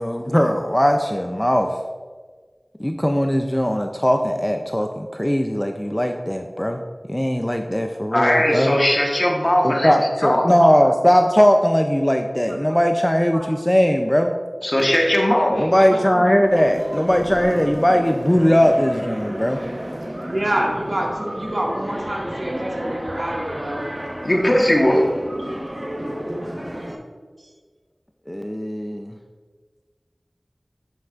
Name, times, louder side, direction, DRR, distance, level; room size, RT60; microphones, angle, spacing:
voice 1, 0.0-1.8 2.8-6.8 7.1-8.8 9.6-14.3 15.6-19.6 28.3-29.2, equal, 15° left, 4 dB, 0.4 m, -19 dB
voice 2, 8.1-10.4 14.6-15.6 24.2-25.1, left 1 dB, 45° left, 0 dB, 1.3 m, -18 dB
voice 3, 15.5-16.3 20.2-23.9, right 1 dB, 60° right, -3 dB, 1.9 m, -27 dB
sound 1, 16.4-27.0, equal, 30° right, 1.0 m, -32 dB
9.5 x 6.9 x 2.5 m, 1.5 s
wide cardioid pair, 40°, 0 cm